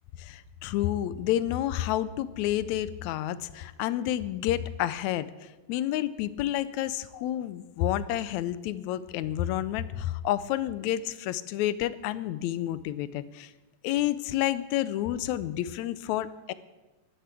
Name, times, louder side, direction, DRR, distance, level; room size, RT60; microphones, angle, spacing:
voice 1, 0.2-5.3 5.7-13.5 13.8-16.5, left 13 dB, 80° left, 16 dB, 1.9 m, -29 dB
12.5 x 9.5 x 8.2 m, 1.1 s
omnidirectional pair, 3.3 m